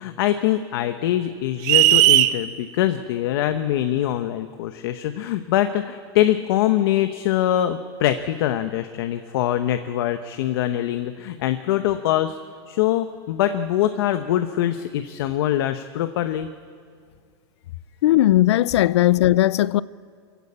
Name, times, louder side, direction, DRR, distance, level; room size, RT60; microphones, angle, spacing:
voice 1, 0.0-12.4 12.7-16.5, left 12 dB, 60° left, 0.9 m, -23 dB
sound 1, 1.6-2.4, right 16 dB, 40° right, 0.6 m, -15 dB
voice 2, 18.0-19.8, left 14 dB, 90° left, 0.5 m, -17 dB
23.5 x 15.5 x 8.7 m
supercardioid pair, 170°, 14 cm